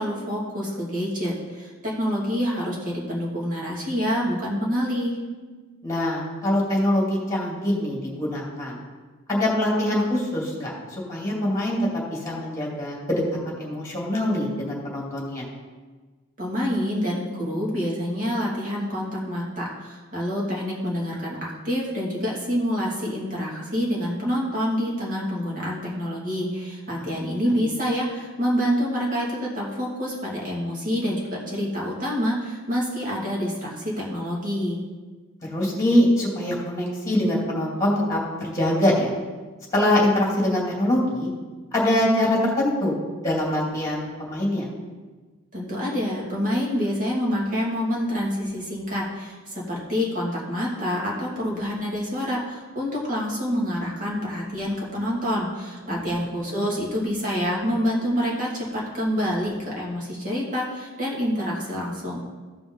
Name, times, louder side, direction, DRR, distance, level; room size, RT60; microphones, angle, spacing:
voice 1, 0.0-5.2 16.4-34.8 45.5-62.2, equal, 40° right, -4 dB, 2.4 m, -27 dB
voice 2, 5.8-8.8 9.3-11.8 12.1-15.4 27.6-27.7 35.4-39.1 39.7-41.3 41.7-42.9 43.2-44.7 55.8-56.1 56.5-56.6, left 1 dB, 15° left, -3 dB, 2.5 m, -24 dB
14.5 x 5.2 x 3.9 m, 1.3 s
head